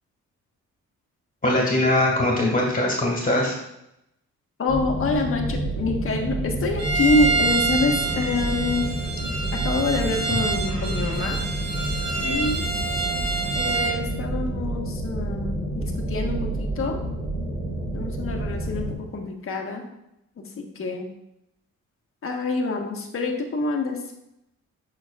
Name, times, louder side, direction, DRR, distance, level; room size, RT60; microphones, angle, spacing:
voice 1, 1.4-3.6, left 1 dB, 30° left, -2 dB, 2.0 m, -21 dB
voice 2, 4.6-8.9 9.5-11.4 12.2-12.7 13.5-17.0 17.9-19.8 20.4-21.1 22.2-24.0, left 3 dB, 45° left, 2 dB, 1.3 m, -26 dB
sound 1, 4.7-18.9, right 1 dB, 20° right, 2.6 m, -29 dB
Bowed string instrument, 6.8-14.0, right 3 dB, 55° right, 1.4 m, -27 dB
8.3 x 5.9 x 2.4 m, 0.83 s
cardioid pair, 90°, 30 cm